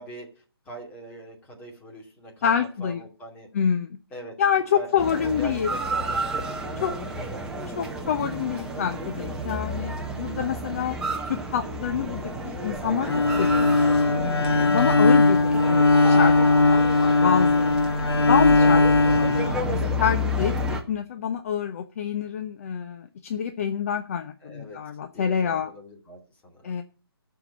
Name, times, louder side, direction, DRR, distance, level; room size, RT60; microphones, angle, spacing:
voice 1, 0.0-3.5 4.1-4.3 4.7-6.1 6.7-7.4 24.4-24.8 25.1-26.8, right 1 dB, 10° left, 0 dB, 2.4 m, -42 dB
voice 2, 2.4-3.0 3.5-4.0 4.4-5.7 6.8-6.9 7.8-11.0 11.3-13.1 13.4-13.9 14.5-17.8 18.3-25.7 26.6-26.8, left 8 dB, 35° left, 7 dB, 0.8 m, -27 dB
sound 1, 5.0-20.8, equal, 5° right, 1.0 m, -31 dB
sound 2, 9.3-12.4, right 2 dB, 30° right, 1.6 m, -39 dB
Bowed string instrument, 13.0-20.2, left 3 dB, 85° left, 1.4 m, -19 dB
12.0 x 4.9 x 8.6 m, 0.37 s
figure-of-eight pair, 150°, 13 cm